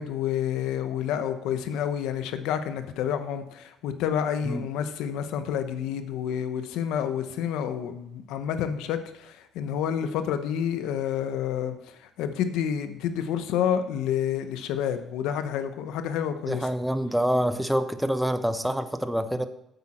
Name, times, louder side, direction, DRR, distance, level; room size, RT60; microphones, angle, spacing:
voice 1, 0.0-16.7, left 9 dB, 85° left, 9 dB, 0.9 m, -29 dB
voice 2, 16.5-19.5, equal, 5° right, 9 dB, 0.9 m, -26 dB
9.2 x 8.2 x 4.3 m, 0.80 s
cardioid pair, 95°, 0 cm